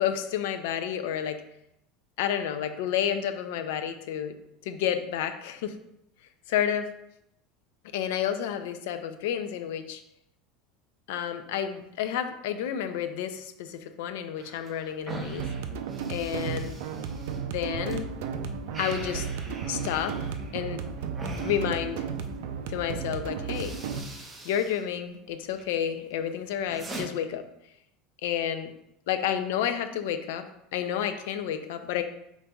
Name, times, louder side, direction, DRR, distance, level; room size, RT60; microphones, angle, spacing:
voice 1, 0.0-1.4 2.2-4.4 4.6-5.8 6.5-6.9 7.9-10.0 11.1-15.5 16.1-16.7 17.4-18.1 18.8-19.3 19.7-20.2 20.5-20.8 21.4-22.1 22.7-23.8 24.4-27.5 28.2-28.7 29.1-32.0, left 9 dB, 80° left, 9 dB, 0.4 m, -30 dB
sound 1, 14.4-18.0 18.3-22.4 23.0-23.1 23.4-24.8 25.1-25.7 26.1-27.0, right 2 dB, 10° right, 0.6 m, -42 dB
sound 2, 15.4-24.0, right 6 dB, 75° right, 0.4 m, -34 dB
5.0 x 4.0 x 2.3 m, 0.79 s
cardioid pair, 165°, 0 cm